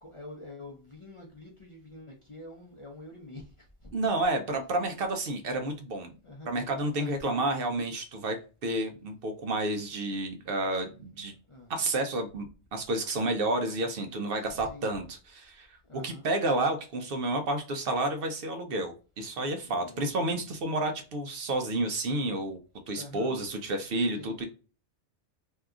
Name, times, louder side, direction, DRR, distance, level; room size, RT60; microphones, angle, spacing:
voice 1, 0.0-3.9 6.2-6.5 6.9-7.5 11.5-11.7 14.4-14.9 15.8-16.3 19.6-20.5 22.9-23.4 24.1-24.3, left 2 dB, 35° left, 0.5 m, -46 dB
voice 2, 3.9-6.1 6.5-11.3 11.7-12.5 12.7-15.7 16.0-22.6 22.9-24.4, right 2 dB, 60° right, 0.7 m, -30 dB
2.7 x 2.3 x 3.5 m
omnidirectional pair, 1.2 m